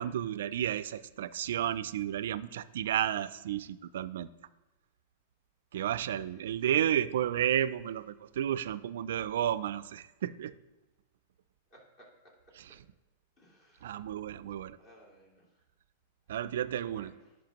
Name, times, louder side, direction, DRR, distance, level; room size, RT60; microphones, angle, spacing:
voice 1, 0.0-4.3 5.7-10.5 13.8-14.8 16.3-17.1, right 10 dB, 75° right, 16 dB, 0.3 m, -32 dB
voice 2, 6.2-6.8 11.7-12.3 13.4-14.0 14.8-15.6 16.8-17.4, equal, 35° left, -3 dB, 2.7 m, -59 dB
10.5 x 4.8 x 3.0 m, 1.1 s
hypercardioid pair, 130°, 0 cm